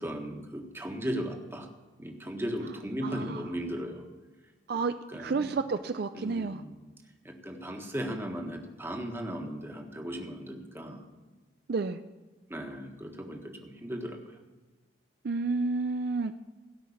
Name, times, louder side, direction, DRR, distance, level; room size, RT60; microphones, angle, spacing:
voice 1, 0.0-1.7 2.0-4.0 5.1-5.5 6.1-6.8 7.2-11.0 12.5-14.2, equal, 15° right, 2 dB, 1.5 m, -37 dB
voice 2, 3.0-3.4 4.7-4.9 5.2-6.6 11.7-12.0 15.2-16.3, right 4 dB, 60° right, 9 dB, 0.5 m, -30 dB
17.0 x 5.8 x 8.5 m, 1.3 s
head